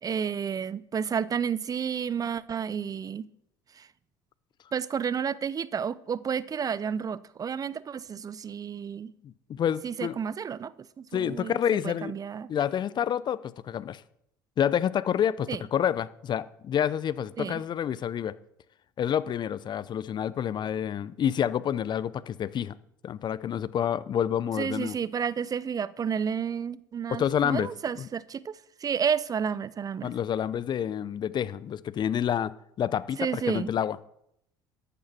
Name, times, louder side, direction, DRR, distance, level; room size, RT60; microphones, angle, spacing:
voice 1, 0.0-3.3 3.7-3.9 4.7-9.1 9.8-12.5 15.5-15.6 17.4-17.6 24.6-30.1 33.2-33.7, right 7 dB, 35° right, 0.6 m, -31 dB
voice 2, 9.2-10.2 11.1-12.2 12.5-14.0 14.6-18.3 19.0-22.8 23.0-25.0 27.1-27.7 30.0-32.5 32.8-34.0, left 9 dB, 40° left, 0.6 m, -28 dB
13.5 x 12.5 x 4.4 m
hypercardioid pair, 65°, 11 cm